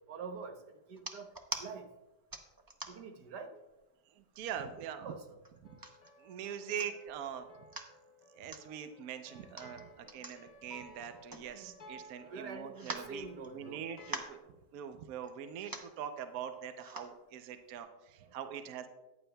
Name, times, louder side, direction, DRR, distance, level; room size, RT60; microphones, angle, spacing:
voice 1, 0.1-0.5 0.9-1.3 1.6-1.9 2.9-3.6 4.9-5.4 11.5-11.9 12.2-13.8 18.2-18.3, right 4 dB, 85° right, 5 dB, 1.5 m, -45 dB
sound 1, 1.0-1.7 2.3-3.2 3.7-3.8 4.2-4.8 5.4-6.1 6.5-6.6 6.8-7.2 7.5-7.9 8.5-8.6 9.4-11.9 12.2-12.3 12.7-13.7 14.0-14.4 15.2-15.3 15.6-16.0 16.8-17.1 17.7-17.8, right 2 dB, 30° right, 0.4 m, -44 dB
voice 2, 4.1-5.1 5.7-5.8 6.2-7.5 8.3-18.9, right 8 dB, 65° right, 8 dB, 1.1 m, -43 dB
sound 2, 5.6-14.4, left 1 dB, 45° left, 0.5 m, -57 dB
14.0 x 9.8 x 2.2 m, 1.0 s
omnidirectional pair, 1.7 m